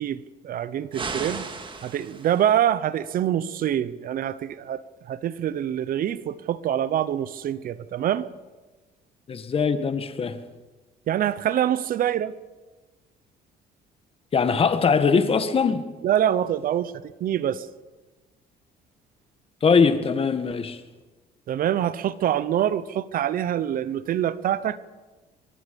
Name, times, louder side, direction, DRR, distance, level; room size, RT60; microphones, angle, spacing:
voice 1, 0.0-1.4 1.8-8.3 11.1-12.3 16.0-16.9 17.2-17.7 21.5-24.8, right 10 dB, 55° right, 17 dB, 0.8 m, -25 dB
sound 1, 0.9-2.5, right 4 dB, 30° right, 2.1 m, -35 dB
voice 2, 9.3-10.4 14.3-15.8 19.6-20.8, left 5 dB, 35° left, 10 dB, 1.6 m, -21 dB
24.5 x 22.0 x 5.3 m, 1.2 s
cardioid pair, 110°, 17 cm